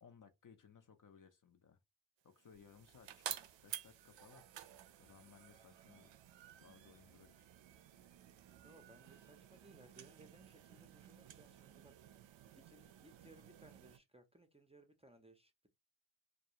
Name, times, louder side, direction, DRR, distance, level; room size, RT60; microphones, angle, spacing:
voice 1, 0.0-1.8 2.2-4.6 5.0-6.2 6.6-7.5, left 6 dB, 40° left, 0.5 m, -63 dB
sound 1, 2.3-14.0, right 11 dB, 65° right, 0.5 m, -53 dB
voice 2, 8.6-12.1 12.5-15.7, right 1 dB, 15° right, 0.5 m, -63 dB
2.3 x 2.1 x 2.7 m
cardioid pair, 50°, 49 cm